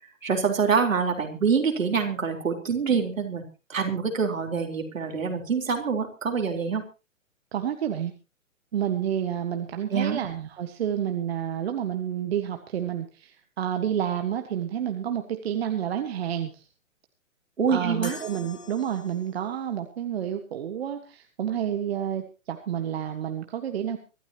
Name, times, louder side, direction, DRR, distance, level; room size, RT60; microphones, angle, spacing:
voice 1, 0.2-3.4 3.7-6.8 9.9-10.2 17.6-18.2, right 5 dB, 70° right, 3 dB, 4.0 m, -25 dB
voice 2, 7.5-8.1 8.7-16.7 17.7-24.0, right 9 dB, 45° right, 6 dB, 1.7 m, -29 dB
sound 1, 18.0-19.5, left 5 dB, 60° left, 3.7 m, -43 dB
24.5 x 13.0 x 3.0 m, 0.31 s
figure-of-eight pair, 130°, 41 cm